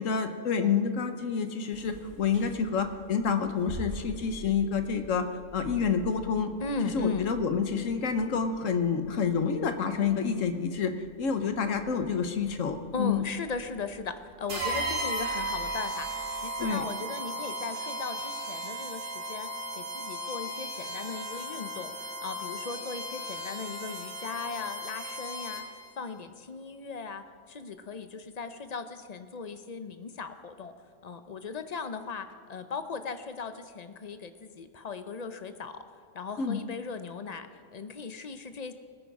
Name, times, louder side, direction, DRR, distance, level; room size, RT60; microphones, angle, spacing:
voice 1, 0.0-5.3 5.5-6.5 6.8-13.2 16.6-16.8 36.4-36.6, left 6 dB, 85° left, 8 dB, 1.4 m, -28 dB
sound 1, 1.7-16.7, right 1 dB, 60° right, 2.2 m, -49 dB
voice 2, 6.6-7.3 12.9-25.6 26.0-30.7 31.0-35.8 36.1-38.7, left 4 dB, 40° left, 9 dB, 0.7 m, -38 dB
sound 2, 14.5-25.9, right 1 dB, 75° right, 2.2 m, -35 dB
19.5 x 9.3 x 4.8 m, 2.4 s
omnidirectional pair, 1.3 m